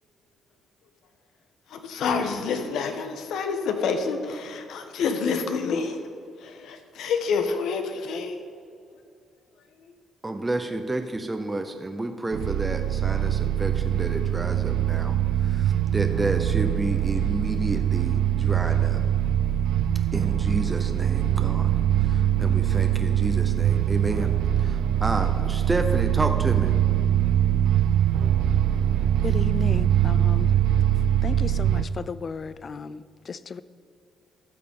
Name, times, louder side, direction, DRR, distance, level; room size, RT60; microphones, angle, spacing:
voice 1, 1.7-6.0 6.4-8.4 9.8-9.9, left 5 dB, 80° left, 1.3 m, -28 dB
voice 2, 10.2-19.0 20.1-21.7 22.0-24.3 24.6-26.8, right 2 dB, 20° right, 0.7 m, -30 dB
sound 1, 12.3-31.8, right 10 dB, 90° right, 0.5 m, -23 dB
voice 3, 29.2-30.6 31.2-33.6, left 5 dB, 40° left, 0.4 m, -34 dB
14.0 x 6.6 x 5.5 m
cardioid pair, 90°, 0 cm